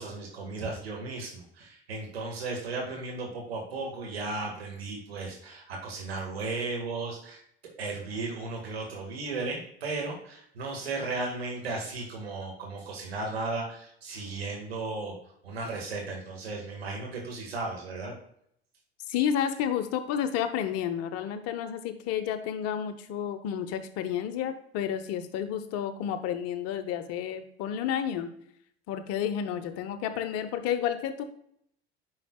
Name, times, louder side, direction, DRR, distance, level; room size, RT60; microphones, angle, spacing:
voice 1, 0.0-7.4 7.8-15.2 15.4-18.1, right 3 dB, 80° right, 0 dB, 1.8 m, -35 dB
voice 2, 19.1-28.3 28.9-31.2, left 9 dB, 50° left, 9 dB, 1.0 m, -31 dB
9.6 x 5.7 x 2.3 m, 0.69 s
figure-of-eight pair, 70°, 30 cm